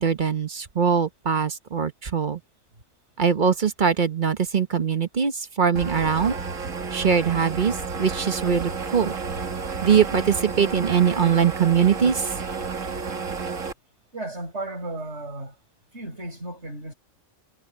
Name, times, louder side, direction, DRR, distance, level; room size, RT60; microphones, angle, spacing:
voice 1, 0.0-2.4 3.2-6.3 6.9-9.2 9.8-12.3, right 7 dB, 40° right, 1.1 m, -22 dB
sound 1, 5.8-13.7, right 4 dB, 85° right, 2.1 m, -31 dB
voice 2, 14.1-15.6 15.9-16.9, right 2 dB, 60° right, 7.3 m, -34 dB
omnidirectional pair, 1.3 m